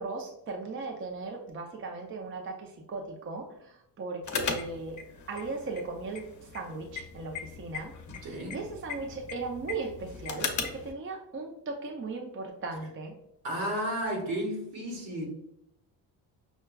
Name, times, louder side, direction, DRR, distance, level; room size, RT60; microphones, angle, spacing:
voice 1, 0.0-5.0 5.3-13.1, right 3 dB, 30° right, 0.5 m, -38 dB
sound 1, 4.2-10.9, left 5 dB, 45° left, 0.7 m, -38 dB
voice 2, 8.2-8.6 13.4-15.3, equal, 75° right, 1.4 m, -32 dB
5.6 x 2.3 x 2.2 m
cardioid pair, 100°, 43 cm